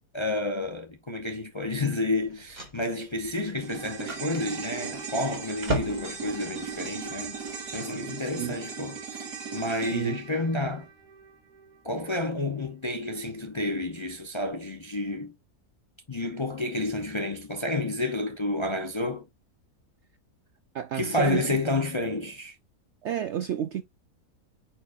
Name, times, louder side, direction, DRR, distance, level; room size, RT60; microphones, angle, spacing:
voice 1, 0.1-7.4 7.7-9.3 9.5-10.9 11.8-15.3 16.1-19.3 20.9-22.5, left 2 dB, 30° left, 0.5 m, -30 dB
sound 1, 2.1-8.0, right 1 dB, 30° right, 2.2 m, -38 dB
sound 2, 3.6-12.1 12.4-12.5, right 6 dB, 85° right, 2.4 m, -38 dB
voice 2, 8.2-8.6 9.9-10.2 20.7-21.6 23.0-23.8, right 10 dB, 70° right, 0.7 m, -31 dB
9.1 x 4.5 x 2.5 m
omnidirectional pair, 1.6 m